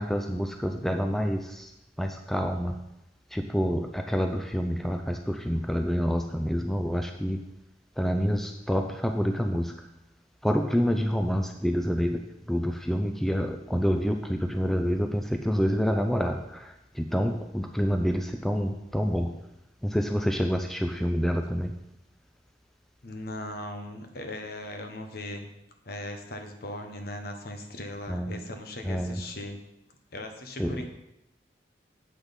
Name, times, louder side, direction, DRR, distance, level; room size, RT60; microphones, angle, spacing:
voice 1, 0.0-1.7 2.0-2.8 3.3-7.4 8.0-9.9 10.4-19.3 19.8-21.7 28.1-28.4 28.8-29.2 30.6-30.9, equal, ahead, 4 dB, 0.4 m, -27 dB
voice 2, 23.0-25.5 25.8-29.6 30.1-30.9, left 1 dB, 55° left, 5 dB, 1.2 m, -38 dB
8.0 x 6.1 x 5.3 m, 0.87 s
head